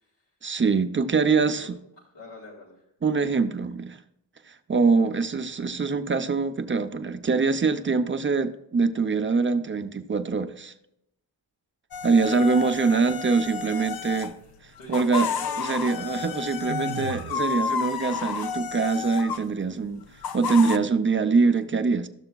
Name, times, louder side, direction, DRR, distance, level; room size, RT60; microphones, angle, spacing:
voice 1, 0.4-1.8 3.0-4.0 4.7-10.7 12.0-14.3 14.9-15.3 15.6-20.0 20.3-22.1, right 4 dB, 30° right, 7 dB, 0.5 m, -24 dB
voice 2, 1.4-1.7 2.0-2.9 14.1-15.9 16.8-17.1 21.4-21.5, left 2 dB, 80° left, -3 dB, 2.0 m, -44 dB
sound 1, 11.9-14.3 14.8-19.5 20.2-20.8, left 6 dB, 60° left, 0.5 m, -31 dB
sound 2, 16.7-17.6, right 7 dB, 80° right, 0.6 m, -35 dB
13.0 x 6.8 x 2.3 m, 0.80 s
wide cardioid pair, 120°, 42 cm